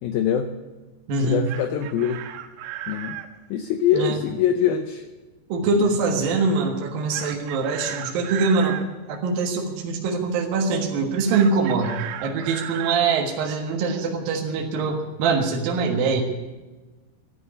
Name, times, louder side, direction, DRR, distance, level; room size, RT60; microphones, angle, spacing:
voice 1, 0.0-0.5 1.2-2.2 2.9-3.2 3.5-5.0 5.8-5.9, left 9 dB, 90° left, 7 dB, 2.1 m, -23 dB
voice 2, 1.1-1.4 3.9-4.2 5.5-8.8 9.1-12.0 12.2-16.2, right 4 dB, 60° right, 1 dB, 2.9 m, -23 dB
Chicken rooster, 1.2-3.3 7.1-8.9 11.3-13.1, right 12 dB, 90° right, 3.5 m, -35 dB
12.5 x 11.5 x 9.8 m, 1.2 s
omnidirectional pair, 5.3 m